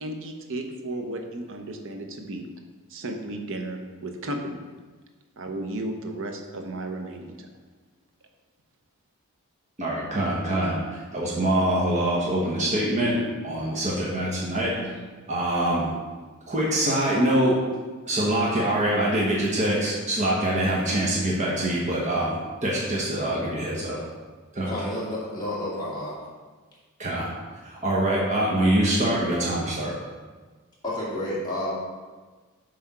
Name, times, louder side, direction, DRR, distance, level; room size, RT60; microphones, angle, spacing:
voice 1, 0.0-2.5 2.9-4.6 5.4-7.5, right 1 dB, 60° right, 4 dB, 0.8 m, -34 dB
voice 2, 9.8-13.2 13.4-15.0 15.3-15.9 16.5-17.6 18.1-24.0 24.5-24.7 27.0-27.3 27.6-29.9, right 1 dB, 35° right, -5 dB, 1.1 m, -24 dB
voice 3, 24.7-26.1 30.8-31.7, left 1 dB, 20° left, -8 dB, 2.2 m, -30 dB
7.4 x 3.5 x 5.8 m, 1.4 s
head